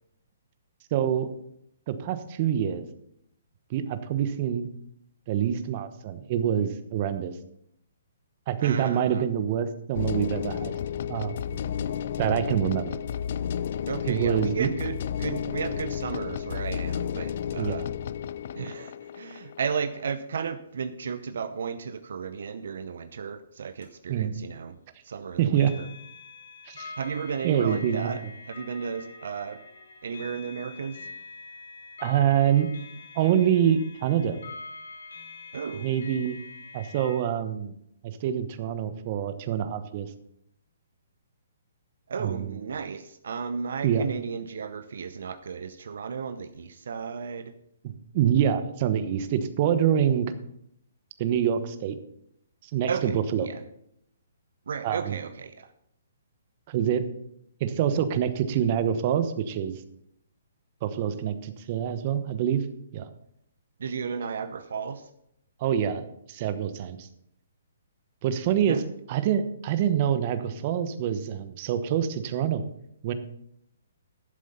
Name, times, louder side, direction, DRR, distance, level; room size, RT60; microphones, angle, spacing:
voice 1, 0.9-1.3 1.9-2.9 3.7-4.7 5.3-7.3 8.5-10.7 11.1-11.6 12.2-13.0 14.1-14.7 17.6-17.8 24.1-24.4 25.4-25.7 26.6-26.9 27.4-28.1 32.0-32.7 33.1-34.4 35.8-36.4 36.7-37.7 38.0-40.1 42.2-42.6 43.8-44.1 48.1-50.3 51.2-52.0 52.7-53.5 54.8-55.2 56.7-57.1 57.6-59.8 60.8-62.6 62.9-63.1 65.6-67.1 68.2-68.8 69.1-72.6 73.0-73.1, right 9 dB, 40° right, 11 dB, 1.0 m, -26 dB
voice 2, 8.6-9.3 13.9-17.9 18.5-24.8 25.0-25.9 27.0-29.6 30.0-31.0 35.5-35.9 42.1-47.5 52.9-53.6 54.7-55.7 63.8-65.1 68.7-68.8, right 6 dB, 70° right, 11 dB, 0.7 m, -34 dB
sound 1, 9.9-20.0, left 9 dB, 55° left, 0.4 m, -32 dB
sound 2, 23.8-23.9 25.5-37.2, left 3 dB, 85° left, 3.0 m, -45 dB
11.0 x 7.6 x 5.6 m, 0.75 s
hypercardioid pair, 145°, 0 cm